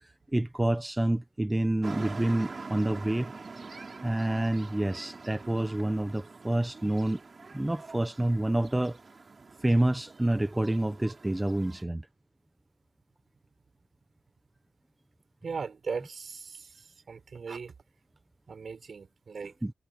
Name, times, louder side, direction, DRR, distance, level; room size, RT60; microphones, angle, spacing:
voice 1, 0.0-3.3 4.0-7.2 7.5-9.0 9.6-12.1 19.6-19.7, right 1 dB, 15° right, 1.0 m, -28 dB
sound 1, 1.8-11.8, right 4 dB, 40° right, 4.4 m, -45 dB
voice 2, 15.4-16.7 17.1-17.7 18.5-19.5, right 5 dB, 55° right, 5.7 m, -38 dB
wide cardioid pair, 100°, 0 cm